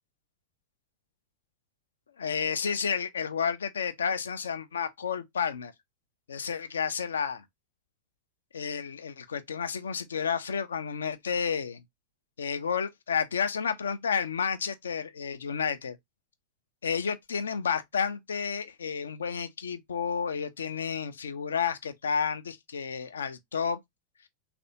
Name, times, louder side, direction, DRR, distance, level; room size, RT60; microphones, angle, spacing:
voice 1, 2.2-5.7 6.3-7.4 8.5-11.8 12.4-16.0 16.8-23.8, left 6 dB, 70° left, 0.4 m, -31 dB
3.3 x 2.5 x 2.7 m
figure-of-eight pair, 90°, 0 cm